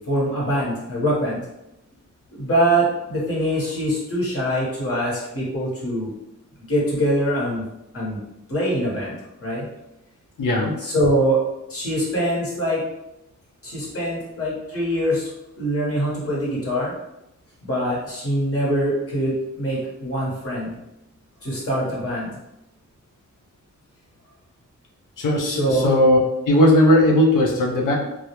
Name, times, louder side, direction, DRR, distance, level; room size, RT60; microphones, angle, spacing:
voice 1, 0.1-1.4 2.3-6.1 6.7-7.6 7.9-8.2 8.5-9.7 10.8-11.4 11.7-12.8 13.6-15.3 15.6-16.9 17.6-20.7 21.4-22.3 25.4-25.9, equal, 45° left, -5 dB, 0.9 m, -23 dB
voice 2, 10.4-10.7 25.2-26.2 26.5-28.0, left 1 dB, 85° left, 0 dB, 0.6 m, -17 dB
2.2 x 2.0 x 2.8 m, 0.89 s
wide cardioid pair, 150°, 31 cm